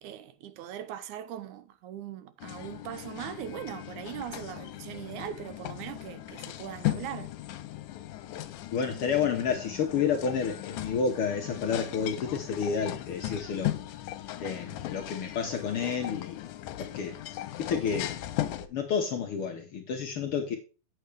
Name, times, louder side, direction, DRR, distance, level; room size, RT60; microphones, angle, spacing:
voice 1, 0.0-7.3, right 10 dB, 80° right, 2.2 m, -40 dB
sound 1, 2.4-18.7, left 14 dB, 90° left, 2.2 m, -37 dB
voice 2, 8.7-13.7 14.4-16.5 16.8-17.1 17.6-18.1 18.6-20.6, left 6 dB, 65° left, 1.4 m, -30 dB
7.9 x 7.7 x 3.3 m
omnidirectional pair, 3.5 m